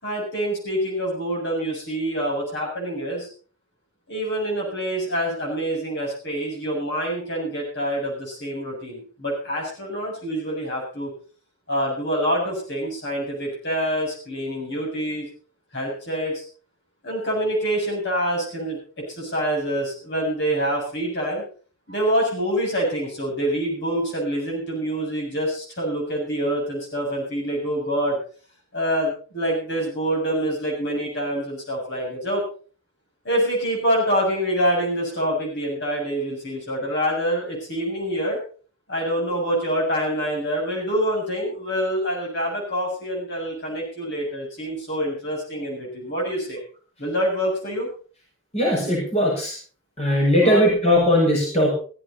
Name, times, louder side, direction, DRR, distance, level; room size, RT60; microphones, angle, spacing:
voice 1, 0.0-3.3 4.1-11.1 11.7-15.3 15.7-16.4 17.0-18.8 19.1-21.4 21.9-28.2 28.7-32.4 33.3-38.4 38.9-46.6 47.0-47.9 50.4-50.7, equal, 55° left, -1 dB, 7.0 m, -26 dB
voice 2, 48.5-49.5 50.0-51.7, equal, 30° left, -2 dB, 6.4 m, -19 dB
15.5 x 15.0 x 4.2 m, 0.40 s
head